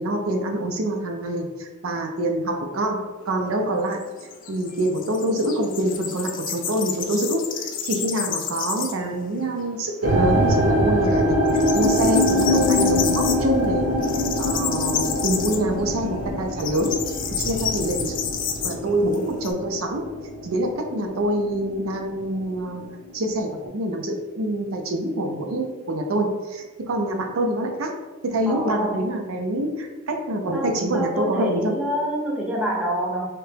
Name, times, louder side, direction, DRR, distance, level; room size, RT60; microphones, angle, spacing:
voice 1, 0.0-4.0 4.5-11.4 11.7-13.9 14.4-17.0 17.3-18.2 18.6-20.1 20.4-22.8 23.1-27.9 28.2-31.8, right 1 dB, 85° right, 3 dB, 0.5 m, -25 dB
sound 1, 3.2-9.1 9.5-9.6 10.0-10.8 11.0-19.5, left 7 dB, 40° left, 0.4 m, -30 dB
sound 2, 10.0-21.2 21.4-22.1 22.7-22.8, equal, 60° right, 1.1 m, -23 dB
voice 2, 28.5-29.0 30.5-33.2, equal, 5° right, -3 dB, 0.6 m, -27 dB
3.2 x 2.8 x 3.3 m, 1.2 s
head